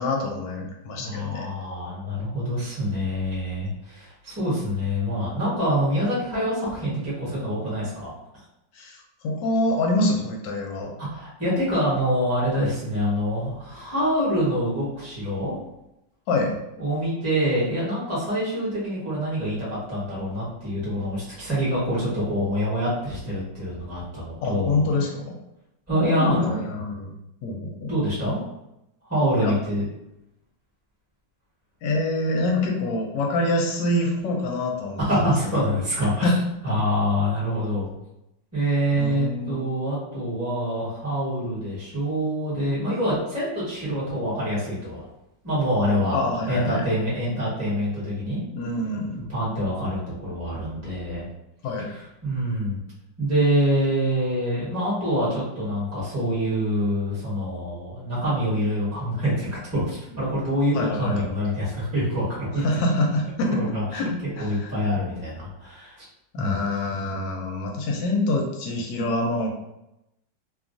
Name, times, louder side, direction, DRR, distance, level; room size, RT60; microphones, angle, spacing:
voice 1, 0.0-1.5 8.7-10.9 16.3-16.6 24.4-25.4 25.9-27.1 27.4-27.9 29.4-29.5 31.8-35.3 36.2-36.3 36.8-36.9 38.9-39.8 46.1-46.8 48.5-49.2 51.6-51.9 60.7-61.2 62.6-63.6 63.9-64.1 64.4-64.7 66.3-69.5, left 2 dB, 80° left, 1 dB, 1.2 m, -26 dB
voice 2, 1.0-8.1 11.0-15.5 16.8-24.8 25.9-26.6 27.9-28.4 29.1-29.8 35.0-36.3 36.6-37.9 38.5-45.0 45.4-48.4 49.2-51.2 52.2-52.8 53.2-62.6 63.5-64.1 64.4-66.1 66.4-66.7, equal, 10° right, -9 dB, 0.9 m, -25 dB
3.0 x 2.3 x 2.5 m, 0.86 s
omnidirectional pair, 1.9 m